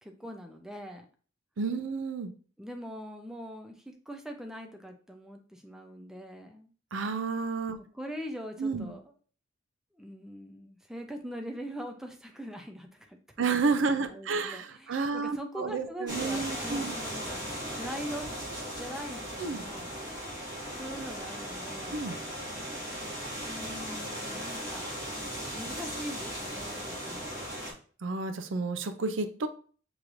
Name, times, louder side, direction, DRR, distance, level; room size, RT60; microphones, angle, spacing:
voice 1, 0.0-1.1 2.6-6.7 7.9-9.0 10.0-13.6 13.9-18.3 18.7-20.0 20.8-22.1 23.5-24.9 25.5-27.3, equal, 5° right, 3 dB, 0.5 m, -42 dB
voice 2, 1.6-2.3 6.9-7.8 8.6-8.9 13.4-16.9 19.4-19.6 21.9-22.2 28.0-29.5, right 4 dB, 75° right, 9 dB, 0.5 m, -31 dB
sound 1, 16.1-27.7, equal, 20° right, 1.9 m, -37 dB
6.4 x 3.0 x 2.5 m, 0.41 s
head